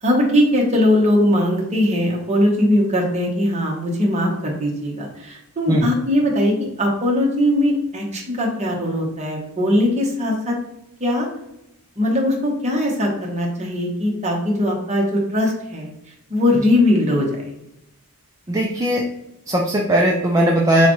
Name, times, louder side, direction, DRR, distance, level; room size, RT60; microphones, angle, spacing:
voice 1, 0.0-10.5 11.0-11.3 12.0-15.9 16.3-17.5, left 1 dB, 30° right, -1 dB, 1.0 m, -20 dB
voice 2, 18.5-19.0 19.5-20.9, right 1 dB, 15° right, -1 dB, 0.4 m, -18 dB
6.7 x 2.3 x 3.0 m, 0.85 s
head